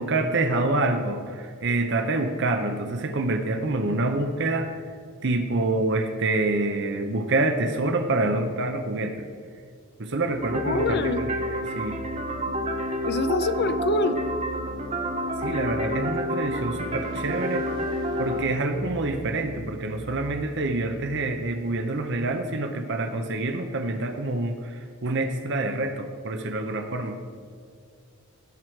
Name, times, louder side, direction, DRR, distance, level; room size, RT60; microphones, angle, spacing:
voice 1, 0.0-4.7 5.2-9.3 10.0-11.0 11.8-12.0 15.4-17.6 18.2-27.2, right 2 dB, 55° right, 6 dB, 0.7 m, -26 dB
sound 1, 10.2-22.0, right 1 dB, 75° left, 2.1 m, -41 dB
Arpeggiated Cmaj chord, 10.4-18.4, equal, 30° right, 1.0 m, -29 dB
voice 2, 10.6-11.2 13.0-14.2, left 2 dB, 45° left, 10 dB, 0.6 m, -25 dB
17.0 x 6.3 x 4.5 m, 2.2 s
head